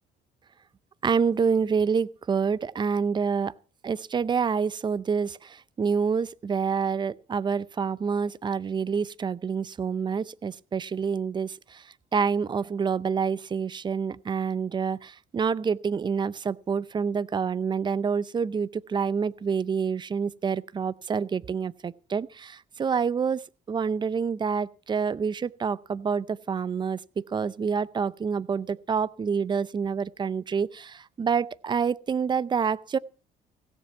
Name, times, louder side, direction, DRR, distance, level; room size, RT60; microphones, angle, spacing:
voice 1, 1.0-3.5 3.8-11.8 12.1-23.4 23.7-33.0, right 6 dB, 25° right, 0.6 m, -27 dB
16.5 x 7.5 x 6.9 m
cardioid pair, 110°, 17 cm